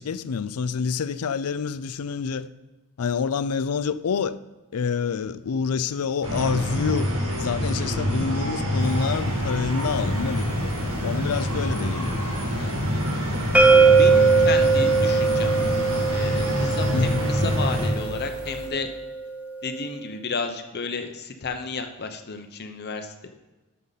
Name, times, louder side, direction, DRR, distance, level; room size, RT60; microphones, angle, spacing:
voice 1, 0.0-2.5 3.0-4.4 4.7-7.1 7.4-10.7 11.0-12.2 16.9-17.2, left 5 dB, 80° left, 0.5 m, -27 dB
sound 1, 6.2-17.9, equal, 65° right, 2.2 m, -26 dB
sound 2, 8.8-18.7, left 2 dB, 40° right, 2.9 m, -43 dB
voice 2, 12.5-13.4 13.9-15.6 16.1-18.9 19.6-23.3, left 4 dB, 50° left, 0.8 m, -33 dB
sound 3, 13.5-19.3, right 4 dB, 5° right, 0.9 m, -20 dB
13.0 x 6.8 x 4.0 m
head